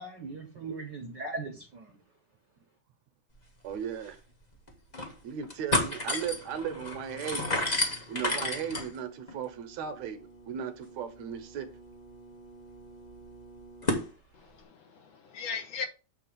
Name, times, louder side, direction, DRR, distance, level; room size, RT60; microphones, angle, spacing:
voice 1, 0.0-2.0, right 3 dB, 50° right, 1.4 m, -39 dB
voice 2, 3.6-4.2 5.2-7.6 8.1-11.7, right 8 dB, 70° right, 2.1 m, -36 dB
sound 1, 3.7-3.8 4.1-4.2 4.7-5.1 5.4-14.1, left 2 dB, 25° left, 1.0 m, -34 dB
voice 3, 14.3-15.9, left 5 dB, 65° left, 2.5 m, -38 dB
8.5 x 3.4 x 6.7 m
omnidirectional pair, 3.4 m